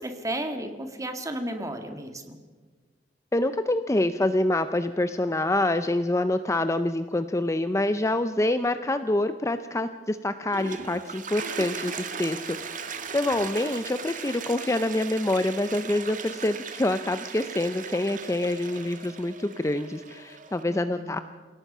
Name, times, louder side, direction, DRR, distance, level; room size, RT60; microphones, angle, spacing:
voice 1, 0.0-2.4 20.7-21.2, right 1 dB, 20° right, 5 dB, 2.0 m, -33 dB
voice 2, 3.3-21.2, left 1 dB, 15° left, 10 dB, 0.5 m, -26 dB
Toilet flush, 10.3-20.6, right 5 dB, 50° right, 1.6 m, -38 dB
28.0 x 17.5 x 5.6 m, 1.4 s
head